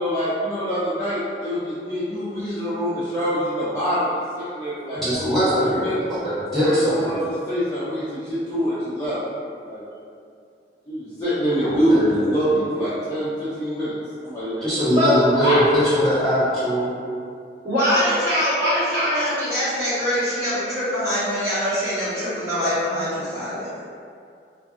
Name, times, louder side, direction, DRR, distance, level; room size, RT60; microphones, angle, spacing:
voice 1, 0.0-4.1 4.4-5.0 5.6-6.0 6.6-7.2 7.5-9.2 9.6-9.8 10.9-13.9 14.2-15.0, equal, 20° left, -14 dB, 0.5 m, -25 dB
voice 2, 5.0-7.1 11.6-12.3 14.6-17.0, equal, ahead, -16 dB, 0.9 m, -21 dB
voice 3, 14.9-15.6 17.6-23.7, equal, 15° right, -16 dB, 1.4 m, -23 dB
2.5 x 2.5 x 2.3 m, 2.3 s
head